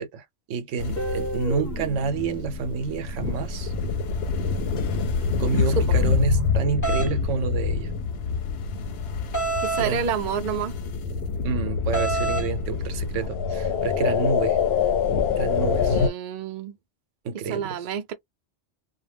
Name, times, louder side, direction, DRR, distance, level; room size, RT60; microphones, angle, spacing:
voice 1, 0.0-3.7 5.4-7.9 9.8-10.1 11.4-14.6 15.4-16.0 17.2-17.9, right 5 dB, 75° right, 0.9 m, -28 dB
sound 1, 0.8-16.1, left 5 dB, 60° left, 0.7 m, -26 dB
Guitar, 1.0-3.9, equal, 15° left, 0.9 m, -35 dB
sound 2, 6.8-7.1 9.3-9.9 11.9-12.5, right 3 dB, 30° left, 0.3 m, -26 dB
voice 2, 9.6-10.7 15.9-16.8 17.5-18.1, right 7 dB, 55° right, 0.5 m, -28 dB
2.2 x 2.1 x 3.3 m
omnidirectional pair, 1.3 m